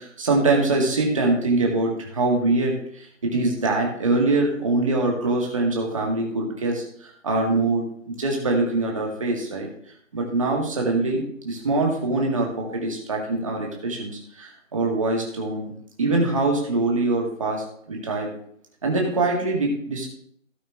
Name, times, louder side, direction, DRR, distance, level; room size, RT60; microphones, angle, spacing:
voice 1, 0.0-9.7 10.1-15.7 16.0-18.3 18.8-20.1, right 2 dB, 25° right, -1 dB, 2.0 m, -23 dB
16.5 x 5.6 x 3.4 m, 0.65 s
figure-of-eight pair, 165°, 40 cm